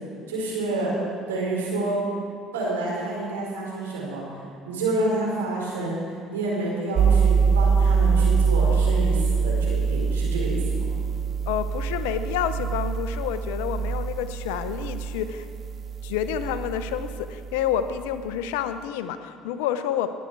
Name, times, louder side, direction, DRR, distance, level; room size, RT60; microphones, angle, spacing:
voice 1, 0.3-1.0 1.3-2.0 2.5-4.2 4.7-6.0 6.3-10.8, right 2 dB, 90° right, -4 dB, 4.0 m, -28 dB
sound 1, 7.0-17.6, right 5 dB, 45° right, 0.7 m, -24 dB
voice 2, 11.5-15.5 16.0-20.2, left 9 dB, 80° left, 11 dB, 0.7 m, -29 dB
18.5 x 9.4 x 4.7 m, 2.4 s
hypercardioid pair, 65°, 0 cm